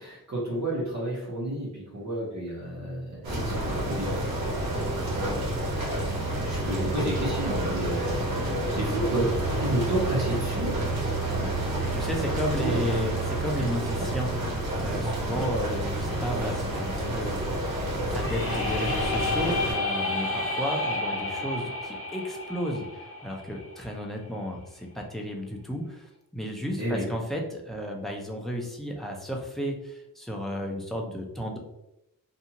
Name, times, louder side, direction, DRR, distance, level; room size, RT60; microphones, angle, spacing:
voice 1, 0.0-4.6 5.1-5.5 6.4-9.3 9.6-10.7 12.6-12.8 15.3-15.5 26.8-27.1, right 1 dB, 50° right, -6 dB, 1.0 m, -31 dB
sound 1, 3.2-19.7, right 1 dB, 80° right, 0.9 m, -29 dB
voice 2, 11.9-17.7 18.1-26.1 26.3-31.6, equal, ahead, 0 dB, 0.4 m, -33 dB
sound 2, 18.1-24.0, left 2 dB, 40° left, 0.7 m, -31 dB
2.6 x 2.3 x 2.8 m, 0.84 s
wide cardioid pair, 130°, 35 cm